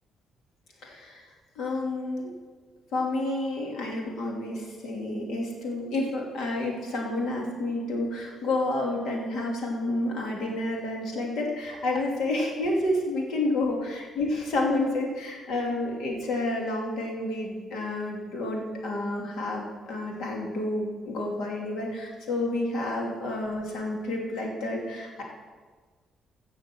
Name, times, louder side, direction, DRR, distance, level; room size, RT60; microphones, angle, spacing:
voice 1, 0.8-1.3 1.5-2.4 2.9-25.2, left 2 dB, 75° left, -1 dB, 2.9 m, -30 dB
16.0 x 6.3 x 6.2 m, 1.4 s
cardioid pair, 90°, 0 cm